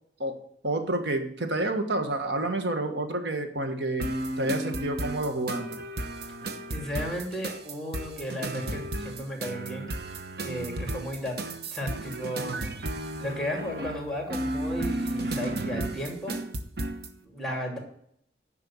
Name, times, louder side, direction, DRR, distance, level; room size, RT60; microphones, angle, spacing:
voice 1, 0.6-4.1 4.4-5.8, right 2 dB, 80° right, 6 dB, 1.6 m, -29 dB
sound 1, 4.0-17.1, right 1 dB, 60° right, 1.0 m, -33 dB
voice 2, 6.7-9.9 10.4-11.4 11.7-12.6 13.2-16.4 17.2-17.8, equal, 5° left, 1 dB, 2.8 m, -34 dB
10.0 x 5.8 x 7.1 m, 0.67 s
head